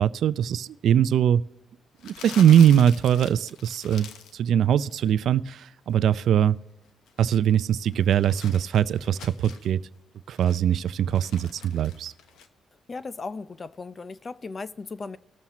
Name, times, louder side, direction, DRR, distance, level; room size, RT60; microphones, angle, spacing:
voice 1, 0.0-1.4 2.0-6.6 7.2-9.8 10.3-12.1, right 9 dB, 70° right, 0.4 m, -21 dB
Crumpling crinkling, 2.0-4.4 4.7-5.1 6.8-9.7 10.2-12.5, left 7 dB, 80° left, 0.9 m, -45 dB
voice 2, 12.9-15.2, left 4 dB, 35° left, 0.5 m, -36 dB
19.5 x 7.2 x 3.0 m
cardioid pair, 90°, 0 cm